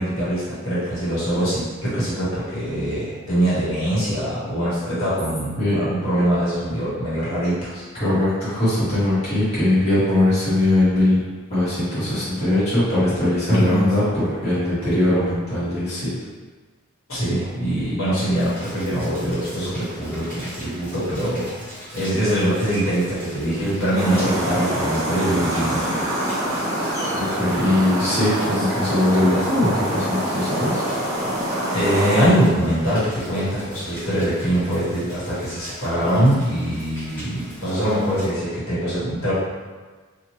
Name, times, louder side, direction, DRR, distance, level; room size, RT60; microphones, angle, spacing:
voice 1, 0.0-7.8 13.5-13.8 17.1-21.5 21.9-25.9 28.5-28.7 31.7-39.3, right 1 dB, 75° left, -11 dB, 1.4 m, -23 dB
voice 2, 7.9-11.2 11.5-16.1 27.2-30.8, left 1 dB, 30° left, -13 dB, 1.2 m, -20 dB
Rain, 18.3-38.3, equal, 10° left, 1.1 m, -41 dB
sound 1, 23.9-32.3, right 1 dB, 15° right, 0.6 m, -25 dB
2.9 x 2.4 x 3.0 m, 1.4 s
head